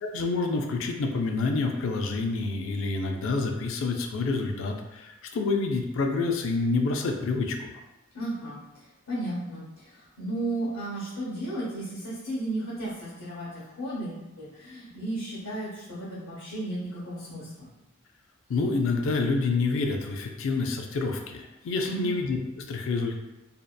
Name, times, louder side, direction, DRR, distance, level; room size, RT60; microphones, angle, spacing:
voice 1, 0.0-7.7 18.5-23.2, left 3 dB, 65° left, 4 dB, 0.3 m, -28 dB
voice 2, 8.1-8.6 9.1-17.7 21.9-22.2, right 1 dB, 85° left, -9 dB, 0.8 m, -34 dB
2.7 x 2.1 x 2.2 m, 1.0 s
head